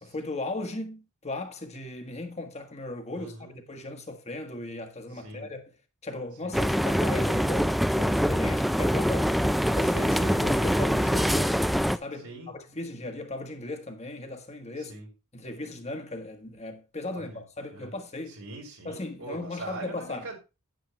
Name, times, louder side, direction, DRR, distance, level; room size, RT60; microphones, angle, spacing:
voice 1, 0.0-5.6 6.0-9.3 9.8-11.5 11.9-15.0 15.3-18.4 18.9-20.3, left 2 dB, 30° left, 1.6 m, -37 dB
voice 2, 3.1-3.6 5.2-5.5 6.4-6.6 12.2-12.5 14.8-15.1 17.1-17.4 17.7-17.9 18.3-20.4, right 2 dB, 80° right, 4.9 m, -42 dB
sound 1, 6.5-12.0, equal, ahead, 0.4 m, -24 dB
9.9 x 9.0 x 3.3 m
head